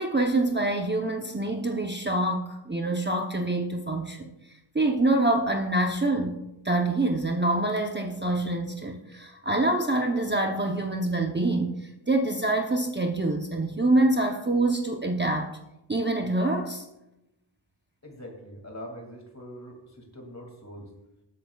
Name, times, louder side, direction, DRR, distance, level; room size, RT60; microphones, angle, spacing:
voice 1, 0.0-4.3 4.7-15.6 15.9-16.9, right 2 dB, 20° right, 2 dB, 0.8 m, -26 dB
voice 2, 18.0-20.9, equal, 30° left, 2 dB, 2.5 m, -43 dB
20.0 x 8.2 x 2.4 m, 0.94 s
wide cardioid pair, 65°, 49 cm